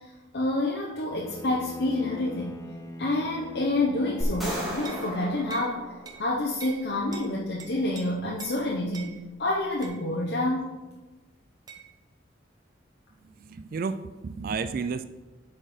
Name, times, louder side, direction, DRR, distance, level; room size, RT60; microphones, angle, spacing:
voice 1, 0.3-2.6 3.0-5.8 6.2-10.7, left 2 dB, 55° left, -3 dB, 0.9 m, -28 dB
Bowed string instrument, 1.1-5.6, left 1 dB, 15° left, 0.5 m, -43 dB
sound 1, 4.2-6.6, equal, ahead, 2.0 m, -35 dB
sound 2, 4.8-5.1 5.5-5.7 6.1-6.2 6.6-6.8 7.1-7.3 7.6-8.0 8.4-8.6 8.9-9.1 9.8-10.0 11.7-11.8, right 6 dB, 20° right, 0.8 m, -42 dB
voice 2, 13.4-15.0, right 5 dB, 45° right, 12 dB, 0.3 m, -32 dB
7.5 x 4.4 x 5.0 m, 1.2 s
head